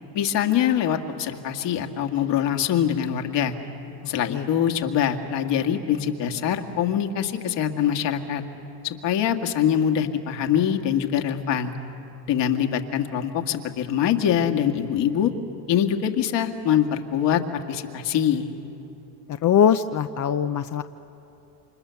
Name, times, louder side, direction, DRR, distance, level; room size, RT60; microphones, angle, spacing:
voice 1, 0.1-3.5 4.1-8.4 8.8-11.7 12.3-15.3 15.7-17.4 17.7-18.5, left 9 dB, 60° left, 4 dB, 2.1 m, -24 dB
voice 2, 19.4-20.8, left 9 dB, 40° left, 9 dB, 0.7 m, -21 dB
28.5 x 25.5 x 7.0 m, 2.9 s
supercardioid pair, 85°, 48 cm